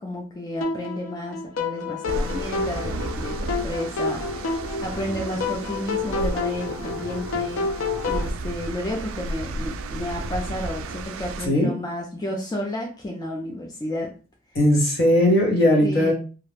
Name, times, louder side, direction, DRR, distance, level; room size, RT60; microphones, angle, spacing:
voice 1, 0.0-4.6 4.8-7.6 8.1-14.1 15.8-16.1, left 1 dB, 20° left, -1 dB, 0.4 m, -31 dB
sound 1, 0.6-8.3, left 4 dB, 75° left, 0.4 m, -29 dB
sound 2, 2.1-11.5, right 2 dB, 90° right, 0.3 m, -33 dB
voice 2, 14.5-16.1, left 1 dB, 55° left, 0 dB, 0.9 m, -18 dB
2.4 x 2.1 x 3.1 m, 0.37 s
head